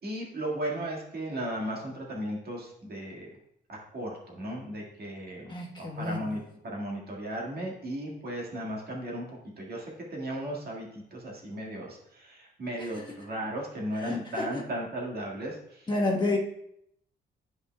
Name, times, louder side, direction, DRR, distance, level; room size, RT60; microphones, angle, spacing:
voice 1, 0.0-3.3 3.7-15.9, right 1 dB, 50° right, -2 dB, 1.8 m, -36 dB
voice 2, 5.5-6.2 14.0-14.6 15.9-16.4, left 2 dB, 20° left, -2 dB, 1.2 m, -29 dB
8.9 x 5.1 x 2.2 m, 0.73 s
cardioid pair, 90°, 20 cm